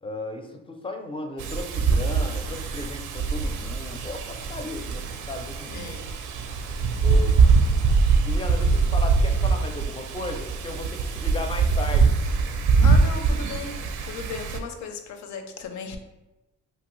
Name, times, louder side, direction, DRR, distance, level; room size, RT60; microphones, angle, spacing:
voice 1, 0.0-6.0 7.0-7.4 8.2-12.2, left 2 dB, 20° left, 4 dB, 0.4 m, -35 dB
Wind, 1.4-14.6, right 4 dB, 80° right, 0.5 m, -23 dB
voice 2, 5.7-6.1 7.1-7.5 12.8-16.0, left 5 dB, 70° left, 6 dB, 0.5 m, -36 dB
2.7 x 2.6 x 3.0 m, 1.0 s
cardioid pair, 90°, 30 cm